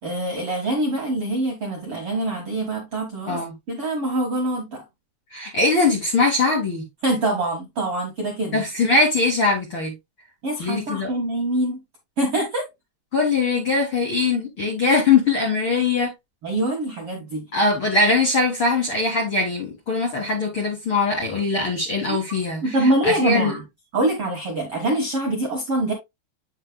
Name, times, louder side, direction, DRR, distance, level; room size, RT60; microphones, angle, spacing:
voice 1, 0.0-4.8 7.0-8.6 10.4-11.8 12.2-12.6 16.4-17.5 22.1-22.2 22.6-23.6 23.9-25.9, right 1 dB, 55° right, 1.5 m, -24 dB
voice 2, 5.3-6.8 8.5-9.9 10.6-11.1 13.1-16.1 17.5-22.6 23.0-23.5, left 3 dB, 50° left, 1.5 m, -21 dB
8.3 x 6.6 x 2.2 m
omnidirectional pair, 5.1 m